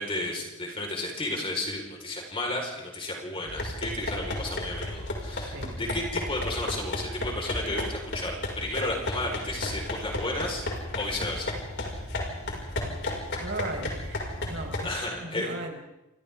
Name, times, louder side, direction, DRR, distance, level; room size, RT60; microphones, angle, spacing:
voice 1, 0.0-10.6 11.0-11.5 14.8-15.5, left 1 dB, 25° left, 0 dB, 4.7 m, -33 dB
sound 1, 3.5-14.9, left 1 dB, 60° left, 5.6 m, -34 dB
voice 2, 13.4-14.9 15.2-15.8, right 2 dB, 60° right, 2 dB, 5.1 m, -37 dB
29.5 x 25.5 x 3.7 m, 0.95 s
head